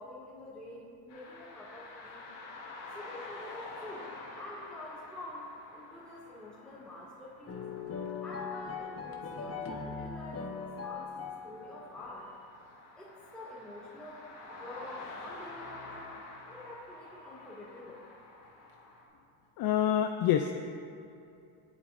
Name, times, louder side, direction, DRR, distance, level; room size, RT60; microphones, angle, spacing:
voice 1, 0.0-2.3 2.9-7.6 8.2-12.5 13.0-18.0, left 1 dB, ahead, -8 dB, 2.0 m, -47 dB
sound 1, 1.1-19.0, left 2 dB, 75° left, 2.5 m, -49 dB
sound 2, 7.5-12.1, left 5 dB, 35° left, 1.2 m, -40 dB
voice 2, 19.6-20.6, left 10 dB, 60° left, 6 dB, 0.6 m, -27 dB
18.0 x 8.5 x 2.6 m, 2.6 s
cardioid pair, 110°, 42 cm